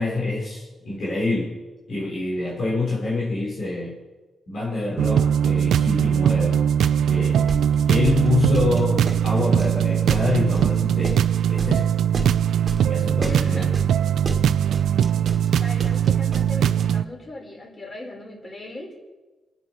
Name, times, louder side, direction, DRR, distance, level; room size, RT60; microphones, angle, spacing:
voice 1, 0.0-1.6 1.9-4.0 4.5-6.7 7.1-7.4 7.9-11.2 11.5-11.9 12.8-13.8, left 3 dB, 60° left, -5 dB, 4.1 m, -26 dB
sound 1, 5.0-17.0, right 9 dB, 85° right, 0.5 m, -20 dB
sound 2, 7.5-16.8, right 2 dB, 40° right, 2.0 m, -33 dB
voice 2, 13.2-13.8 15.6-18.9, left 2 dB, 35° left, -1 dB, 5.6 m, -38 dB
27.0 x 9.8 x 4.5 m, 1.2 s
cardioid pair, 80°, 0 cm